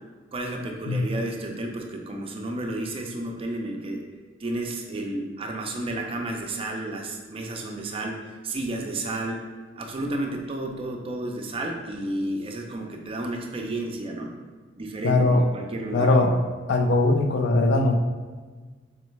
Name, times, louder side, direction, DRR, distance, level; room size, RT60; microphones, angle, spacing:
voice 1, 0.3-4.0 4.4-14.4 14.8-16.1, right 1 dB, 30° right, 2 dB, 0.4 m, -32 dB
voice 2, 15.0-15.4 15.9-16.4 16.7-18.0, left 2 dB, 60° left, 5 dB, 0.4 m, -20 dB
3.9 x 3.1 x 3.1 m, 1.4 s
head